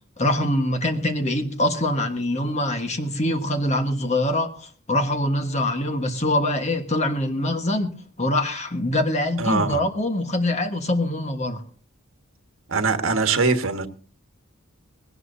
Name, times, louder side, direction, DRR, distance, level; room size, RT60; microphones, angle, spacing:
voice 1, 0.2-11.6, left 1 dB, 30° left, 1.4 m, -24 dB
voice 2, 9.4-9.8 12.7-13.9, right 4 dB, 70° right, 1.5 m, -22 dB
20.0 x 17.5 x 2.7 m
head